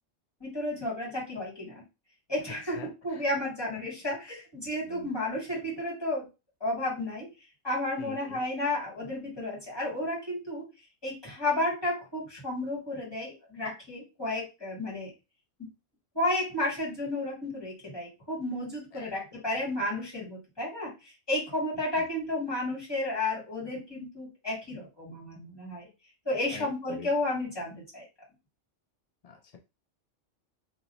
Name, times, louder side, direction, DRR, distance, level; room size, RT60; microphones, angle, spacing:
voice 1, 0.4-1.8 2.3-6.3 6.6-7.3 7.6-10.6 11.0-15.1 16.1-20.9 21.3-25.9 26.2-28.0, left 1 dB, 20° left, -6 dB, 2.0 m, -32 dB
voice 2, 2.6-3.2 3.7-3.8 4.9-5.1 8.0-8.4 18.9-19.4 21.9-22.1 26.5-27.1 29.2-29.6, left 6 dB, 75° left, 4 dB, 0.3 m, -46 dB
2.9 x 2.8 x 2.6 m, 0.26 s
omnidirectional pair, 1.3 m